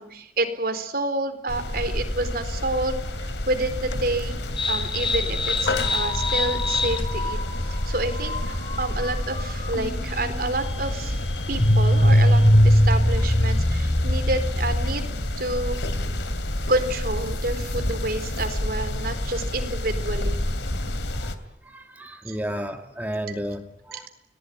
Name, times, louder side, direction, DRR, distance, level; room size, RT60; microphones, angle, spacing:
voice 1, 0.0-4.4 4.7-7.4 7.7-15.8 16.7-20.4 22.3-22.4 23.3-23.4 23.9-24.1, right 2 dB, 55° right, 8 dB, 4.1 m, -29 dB
sound 1, 1.5-21.4, left 1 dB, 80° left, 2.8 m, -29 dB
sound 2, 4.6-15.2, left 1 dB, 30° left, 3.0 m, -23 dB
voice 2, 21.6-24.1, equal, 10° right, 4 dB, 1.6 m, -32 dB
30.0 x 19.5 x 9.2 m, 0.87 s
head